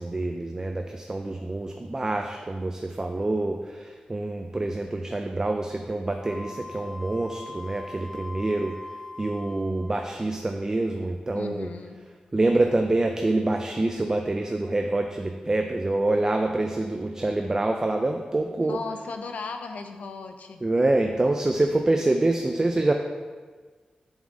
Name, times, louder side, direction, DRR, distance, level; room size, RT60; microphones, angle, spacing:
voice 1, 0.0-11.7 12.3-18.8 20.6-22.9, right 2 dB, 25° right, 4 dB, 0.4 m, -26 dB
Wind instrument woodwind instrument, 6.2-10.3, left 2 dB, 15° left, 1.2 m, -42 dB
voice 2, 11.3-12.0 18.6-20.6, left 4 dB, 85° left, 7 dB, 0.6 m, -36 dB
7.1 x 6.2 x 3.8 m, 1.4 s
wide cardioid pair, 105°, 2 cm